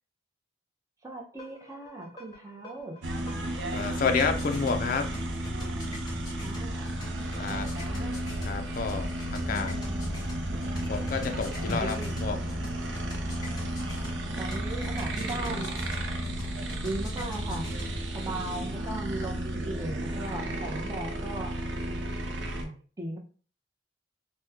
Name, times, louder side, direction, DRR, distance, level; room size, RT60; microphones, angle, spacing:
voice 1, 1.0-3.1 6.4-6.9 7.2-8.1 9.5-10.0 11.7-12.2 14.4-15.8 16.8-17.7 18.1-21.6 22.6-23.2, right 2 dB, 15° right, 0 dB, 0.6 m, -38 dB
sound 1, 1.4-18.0, equal, 20° left, 0.8 m, -40 dB
sound 2, 3.0-22.6, right 1 dB, 65° right, 0.5 m, -33 dB
voice 2, 3.7-5.1 7.4-7.7 8.4-9.7 10.9-12.4, left 5 dB, 45° left, 5 dB, 0.3 m, -30 dB
2.9 x 2.1 x 3.4 m, 0.39 s
head